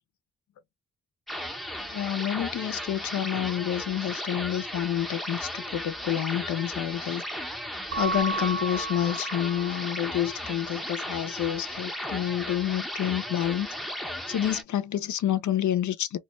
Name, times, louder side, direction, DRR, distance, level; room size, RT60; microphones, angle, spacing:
sound 1, 1.3-14.6, equal, ahead, 0.7 m, -35 dB
voice 1, 1.8-7.2 7.9-13.7 14.3-16.2, left 11 dB, 60° left, 0.6 m, -28 dB
Keyboard (musical) / Bell, 7.9-10.3, right 3 dB, 50° right, 1.1 m, -33 dB
2.3 x 2.1 x 2.9 m
supercardioid pair, 55°, 33 cm